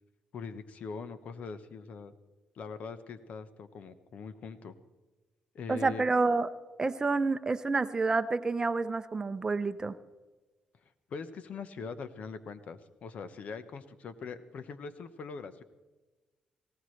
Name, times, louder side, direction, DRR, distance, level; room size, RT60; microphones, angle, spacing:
voice 1, 0.3-2.1 2.5-4.8 5.5-6.0 11.1-15.6, left 5 dB, 60° left, 12 dB, 1.0 m, -42 dB
voice 2, 5.7-6.5 6.8-10.0, right 3 dB, 25° right, 12 dB, 0.7 m, -28 dB
19.0 x 17.0 x 3.3 m, 1.2 s
cardioid pair, 95°, 3 cm